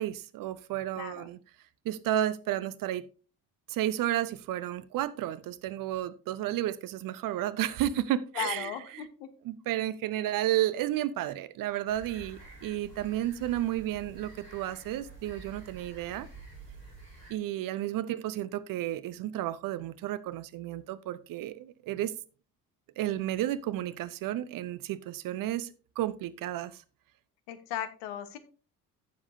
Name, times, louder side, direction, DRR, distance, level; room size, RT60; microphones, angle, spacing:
voice 1, 0.0-1.4 1.8-3.1 3.7-9.1 9.4-16.3 17.3-22.1 23.0-26.8, right 13 dB, 45° right, 0.7 m, -32 dB
voice 2, 0.9-1.3 8.3-9.3 18.1-18.2 27.5-28.4, left 10 dB, 60° left, 1.4 m, -37 dB
sound 1, 11.9-17.3, right 3 dB, 90° left, 5.1 m, -49 dB
15.5 x 7.2 x 2.7 m
figure-of-eight pair, 50°, 47 cm